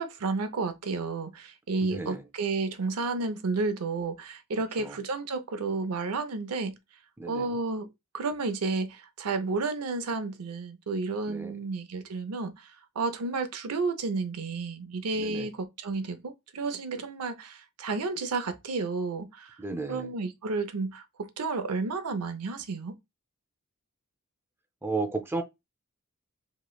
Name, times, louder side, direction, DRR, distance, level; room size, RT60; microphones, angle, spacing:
voice 1, 0.0-6.7 7.3-7.9 8.1-12.7 13.0-19.6 19.9-22.9, right 3 dB, 85° right, 0.6 m, -31 dB
voice 2, 1.8-2.2 4.8-5.0 7.2-7.6 11.3-11.6 15.2-15.5 19.6-20.1 24.8-25.4, right 3 dB, 10° right, 0.4 m, -34 dB
3.1 x 2.9 x 2.3 m
head